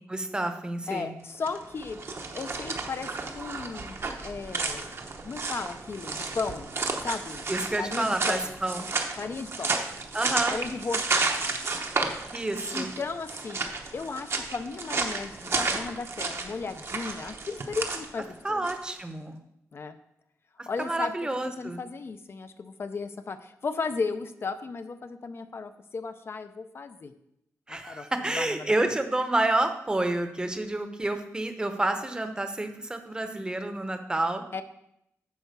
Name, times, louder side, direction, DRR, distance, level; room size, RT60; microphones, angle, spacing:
voice 1, 0.0-1.1 7.5-8.9 10.1-10.6 12.3-12.9 18.4-19.4 20.8-21.8 27.7-34.4, right 2 dB, 15° right, 7 dB, 0.8 m, -29 dB
voice 2, 0.9-4.9 5.2-6.7 7.0-7.5 7.8-8.5 9.2-9.8 10.5-11.6 12.7-18.7 19.7-20.0 20.7-27.1 27.7-28.1 28.3-28.8 34.5-34.6, left 4 dB, 45° left, 9 dB, 0.5 m, -35 dB
sound 1, 1.3-19.0, right 3 dB, 50° right, 0.9 m, -32 dB
9.4 x 4.4 x 6.7 m, 0.77 s
wide cardioid pair, 135°, 6 cm